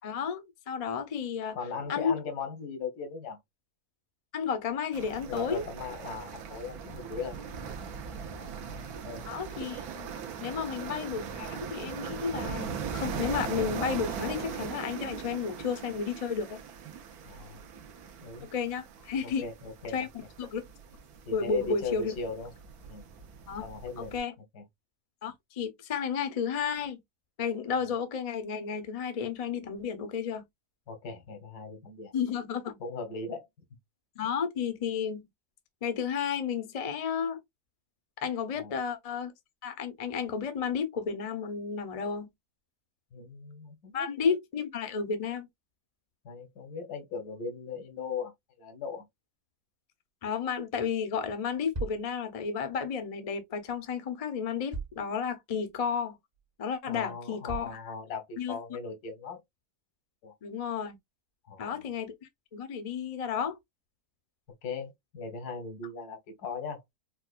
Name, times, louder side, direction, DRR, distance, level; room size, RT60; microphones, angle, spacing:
voice 1, 0.0-1.6 1.9-2.2 4.3-5.6 9.3-10.1 10.4-16.6 18.4-19.4 19.9-20.1 20.4-20.6 21.3-22.1 23.5-23.6 24.0-24.3 25.2-27.0 27.4-30.4 32.1-32.8 34.2-35.3 35.8-37.4 38.2-39.3 39.6-42.3 43.9-45.5 50.2-56.2 56.6-57.8 58.4-58.6 60.4-61.0 61.6-62.1 62.5-63.6, left 6 dB, 60° left, 0.3 m, -32 dB
voice 2, 1.5-3.4 5.3-7.4 8.4-9.2 10.5-10.6 17.2-17.7 18.2-18.5 19.2-20.1 21.3-22.5 22.8-23.1 23.6-24.1 24.5-24.6 30.9-32.1 32.8-33.5 38.6-38.7 43.1-44.1 46.2-48.3 48.6-49.0 56.9-59.4 60.2-60.3 61.5-61.8 64.6-66.8, left 4 dB, 90° left, 1.6 m, -38 dB
sound 1, 4.9-24.2, right 6 dB, 75° right, 1.2 m, -40 dB
sound 2, 51.7-52.1 53.6-53.7 54.7-55.1 55.6-55.7 56.3-56.4 57.5-57.8, right 3 dB, 40° right, 0.7 m, -37 dB
4.5 x 2.2 x 2.4 m
omnidirectional pair, 1.6 m